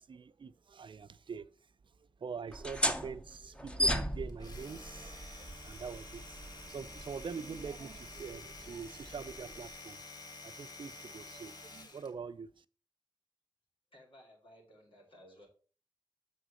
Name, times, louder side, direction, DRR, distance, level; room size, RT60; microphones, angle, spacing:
voice 1, 0.0-1.5 2.2-6.4 6.7-10.0 10.4-12.5, right 6 dB, 70° right, 0.4 m, -44 dB
sound 1, 2.5-9.8, equal, 10° left, 0.8 m, -38 dB
Domestic sounds home sounds, 4.3-12.1, left 2 dB, 50° left, 1.4 m, -50 dB
voice 2, 13.9-15.5, equal, 90° left, 2.7 m, -58 dB
7.0 x 4.0 x 6.2 m
cardioid pair, 55°, 9 cm